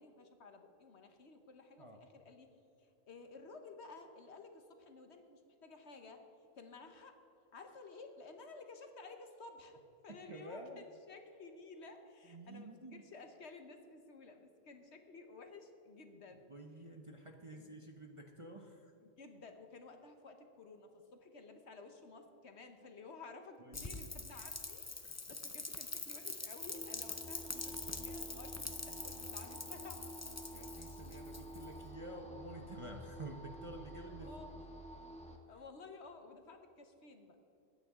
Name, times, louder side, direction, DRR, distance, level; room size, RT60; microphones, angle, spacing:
voice 1, 0.0-2.5 2.8-6.2 6.5-7.2 7.5-9.8 10.0-16.5 17.5-17.7 19.0-24.8 25.1-30.1 34.2-34.7 35.5-37.5, left 3 dB, 60° left, 6 dB, 1.3 m, -54 dB
voice 2, 10.1-10.9 12.2-13.0 16.5-18.9 23.6-24.1 25.0-25.1 30.5-34.3, right 1 dB, 30° right, 2 dB, 0.8 m, -50 dB
Rain, 23.7-31.8, left 3 dB, 20° left, 0.4 m, -45 dB
sound 1, 26.6-35.4, right 1 dB, 5° left, 1.2 m, -50 dB
21.5 x 9.2 x 3.7 m, 2.9 s
omnidirectional pair, 1.3 m